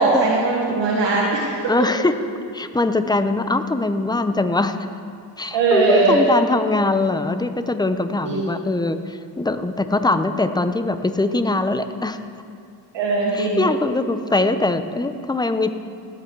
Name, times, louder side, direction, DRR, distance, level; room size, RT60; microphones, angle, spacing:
voice 1, 0.0-1.6 5.5-6.2 8.2-8.5 12.9-13.7, right 3 dB, 80° right, -5 dB, 1.6 m, -19 dB
voice 2, 1.7-2.2 2.5-4.8 5.4-12.2 13.3-15.7, left 2 dB, 10° left, 10 dB, 0.7 m, -22 dB
16.5 x 8.9 x 4.7 m, 2.4 s
cardioid pair, 65°, 43 cm